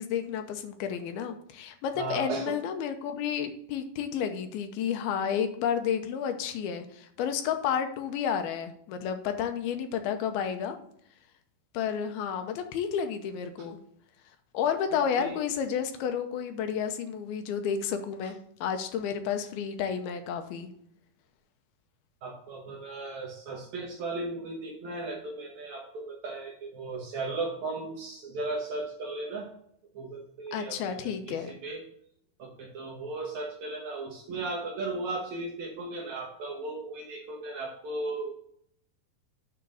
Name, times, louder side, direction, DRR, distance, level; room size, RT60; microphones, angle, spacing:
voice 1, 0.0-10.8 11.7-13.8 14.5-20.7 30.5-31.5, left 8 dB, 85° left, 7 dB, 2.6 m, -31 dB
voice 2, 2.0-2.5 13.6-13.7 14.9-15.4 22.2-29.5 29.9-31.8 32.4-38.3, right 3 dB, 65° right, 0 dB, 2.0 m, -36 dB
9.2 x 3.6 x 6.2 m, 0.69 s
omnidirectional pair, 4.4 m